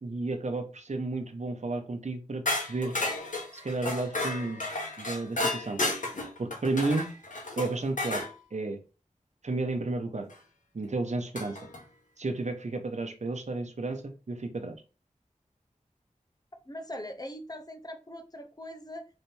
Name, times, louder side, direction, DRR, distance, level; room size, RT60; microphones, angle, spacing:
voice 1, 0.0-2.9 3.5-4.6 5.0-5.8 6.4-7.1 7.6-8.2 8.5-8.8 9.4-10.3 10.7-11.6 12.2-14.7, right 3 dB, 65° right, 6 dB, 0.8 m, -32 dB
sound 1, 2.5-8.3 10.3-10.4 11.4-11.8, left 2 dB, 90° left, 1.1 m, -32 dB
voice 2, 16.7-19.1, left 1 dB, 30° left, 5 dB, 0.8 m, -41 dB
3.5 x 3.2 x 4.3 m, 0.34 s
wide cardioid pair, 60°, 13 cm